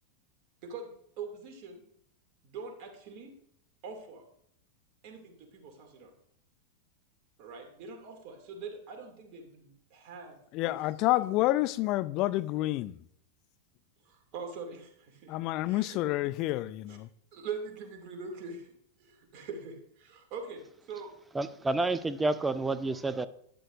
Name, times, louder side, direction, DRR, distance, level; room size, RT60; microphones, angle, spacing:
voice 1, 0.6-1.8 2.4-3.3 3.8-4.2 5.0-6.1 7.4-10.4 10.6-10.8 11.1-11.5 14.0-15.3 15.6-16.1 16.9-17.0 17.3-18.7 19.0-21.1 21.7-22.0, right 5 dB, 40° right, 2.5 m, -43 dB
voice 2, 10.5-13.0 15.3-17.1, left 17 dB, 40° left, 0.5 m, -29 dB
voice 3, 21.3-23.3, right 2 dB, 10° right, 0.6 m, -29 dB
11.5 x 10.0 x 2.6 m
figure-of-eight pair, 90°, 0 cm